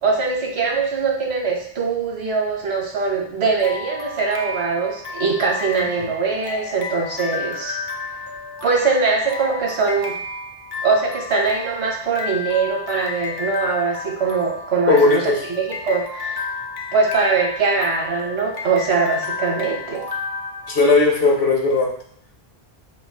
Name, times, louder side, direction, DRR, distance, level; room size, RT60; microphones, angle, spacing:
voice 1, 0.0-7.8 8.6-10.1 10.8-15.2 15.5-16.4 16.9-20.1, right 4 dB, 80° right, -1 dB, 1.3 m, -22 dB
sound 1, 3.6-21.3, left 4 dB, 30° left, 0.5 m, -32 dB
voice 2, 14.9-15.3 20.7-21.9, left 3 dB, 65° left, 0 dB, 1.1 m, -16 dB
3.9 x 2.4 x 4.6 m, 0.62 s
omnidirectional pair, 1.1 m